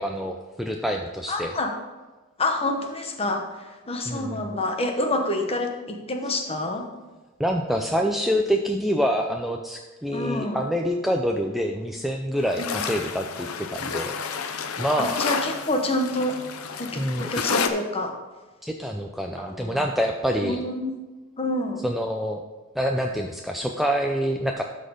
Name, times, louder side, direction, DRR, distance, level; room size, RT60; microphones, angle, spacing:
voice 1, 0.0-1.5 4.1-4.5 7.4-14.1 14.8-15.2 17.0-17.4 18.6-20.6 21.8-22.4 22.8-24.6, equal, ahead, 2 dB, 0.4 m, -26 dB
voice 2, 1.3-1.7 2.4-3.4 3.9-6.9 10.1-10.6 12.6-12.8 15.0-16.4 16.8-18.2 19.5-19.8 20.4-20.9 21.4-21.8, left 2 dB, 25° left, 4 dB, 1.0 m, -27 dB
sound 1, 12.4-17.7, left 5 dB, 80° left, 0.7 m, -30 dB
12.5 x 4.3 x 5.1 m, 1.2 s
head